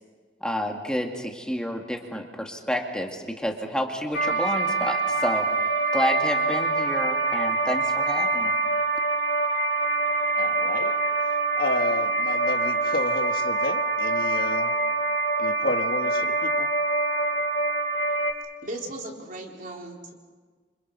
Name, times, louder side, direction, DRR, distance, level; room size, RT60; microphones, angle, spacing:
voice 1, 0.4-5.5 5.9-8.5, equal, 5° left, 2 dB, 2.1 m, -29 dB
sound 1, 4.1-18.3, right 3 dB, 75° left, 2.8 m, -25 dB
voice 2, 10.4-10.9 11.6-14.7 15.4-16.7, left 2 dB, 55° left, 5 dB, 1.8 m, -31 dB
voice 3, 18.6-20.1, right 1 dB, 50° right, 0 dB, 3.8 m, -37 dB
29.5 x 26.5 x 5.5 m, 1.4 s
head